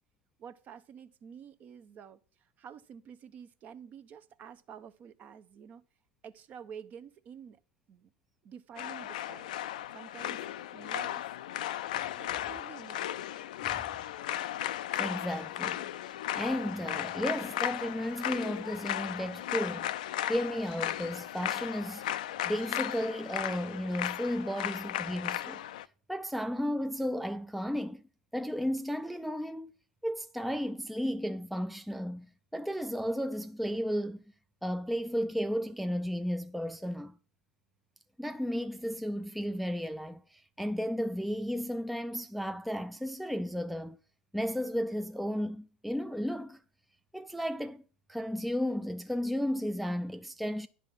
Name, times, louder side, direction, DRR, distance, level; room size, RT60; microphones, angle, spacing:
voice 1, 0.4-5.8 6.2-7.6 7.9-8.1 8.4-9.6 9.9-11.3 12.2-13.2, right 7 dB, 40° right, 0.7 m, -49 dB
sound 1, 8.8-25.8, left 12 dB, 70° left, 0.4 m, -36 dB
voice 2, 14.9-15.8 16.3-19.9 20.3-22.0 22.4-25.6 26.1-28.0 28.3-29.7 30.0-34.2 34.6-37.2 38.2-44.0 44.3-46.6 47.1-47.8 48.1-50.7, equal, ahead, 0.4 m, -34 dB
10.5 x 4.2 x 7.2 m
hypercardioid pair, 85°, 4 cm